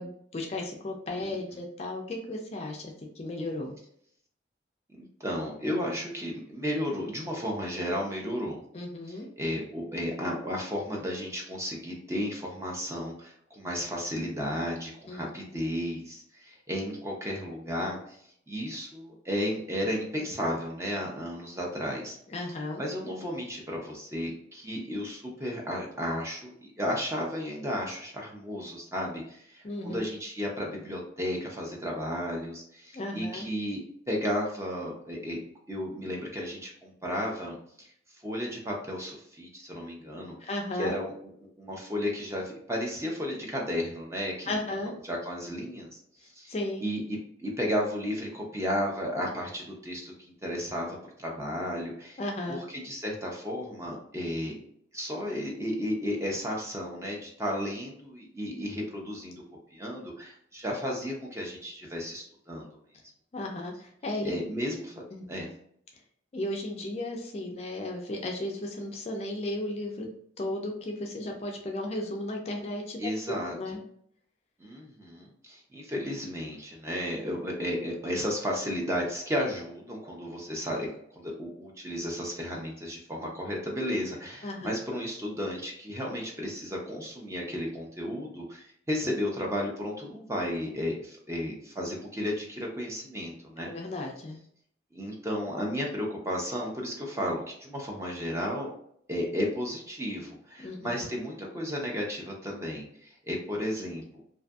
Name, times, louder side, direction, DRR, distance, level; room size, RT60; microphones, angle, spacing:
voice 1, 0.0-3.8 8.7-9.3 15.1-15.3 22.3-22.8 29.6-30.0 32.9-33.5 40.5-40.9 44.5-44.9 46.5-46.8 52.2-52.6 63.3-64.3 65.1-65.3 66.3-70.1 70.4-73.0 73.3-73.8 84.4-84.7 93.6-94.4 100.6-100.8, left 1 dB, 35° left, 1 dB, 0.4 m, -34 dB
voice 2, 4.9-8.6 9.1-18.2 18.5-22.2 22.8-35.4 35.7-37.9 38.2-40.3 40.8-41.1 41.4-44.5 45.0-46.5 46.8-52.2 52.5-54.5 54.9-59.4 59.7-62.7 64.2-64.9 65.3-65.5 73.0-73.6 74.6-80.9 81.2-93.7 94.9-98.7 99.1-104.2, equal, 15° right, -1 dB, 0.5 m, -33 dB
2.5 x 2.5 x 2.3 m, 0.67 s
head